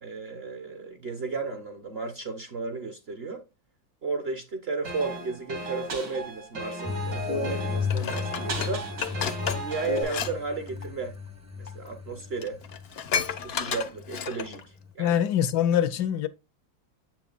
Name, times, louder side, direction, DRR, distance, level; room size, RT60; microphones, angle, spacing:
voice 1, 0.0-3.4 4.0-8.9 9.6-11.2 11.6-12.6 13.2-15.2, right 4 dB, 45° right, 0.9 m, -34 dB
sound 1, 4.8-10.0, equal, 70° right, 2.8 m, -34 dB
sound 2, 6.9-14.9, left 6 dB, 15° right, 0.6 m, -35 dB
Dishes pots and pans, 7.9-10.3 10.6-10.9 11.7-11.8 12.1-12.2 12.4-14.6 15.1-15.2, left 7 dB, 55° left, 0.7 m, -32 dB
voice 2, 15.0-16.3, left 9 dB, 70° left, 1.1 m, -24 dB
7.6 x 6.1 x 2.4 m
omnidirectional pair, 1.9 m